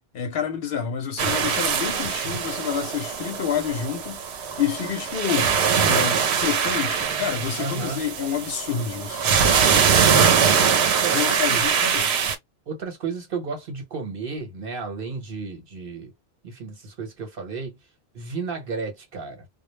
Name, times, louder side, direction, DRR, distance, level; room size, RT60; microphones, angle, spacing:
voice 1, 0.1-4.2 4.6-5.6 5.8-9.5 11.1-12.1, left 8 dB, 65° left, 0.8 m, -28 dB
sound 1, 1.2-12.4, right 7 dB, 85° right, 0.9 m, -22 dB
voice 2, 7.6-8.1 9.7-10.6 11.0-11.7 12.7-16.1 16.4-17.8 18.1-19.5, right 4 dB, 60° right, 1.1 m, -33 dB
2.3 x 2.0 x 3.0 m
omnidirectional pair, 1.1 m